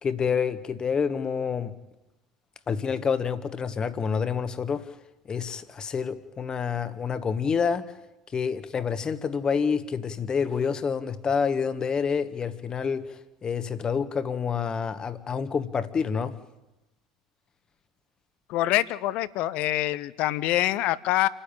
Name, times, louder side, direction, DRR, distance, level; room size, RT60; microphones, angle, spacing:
voice 1, 0.0-1.7 2.7-4.9 5.3-7.9 8.3-16.4, left 6 dB, 30° left, 1.5 m, -28 dB
voice 2, 18.5-21.3, left 15 dB, 55° left, 0.8 m, -25 dB
28.5 x 10.0 x 9.0 m
hypercardioid pair, 70°, 3 cm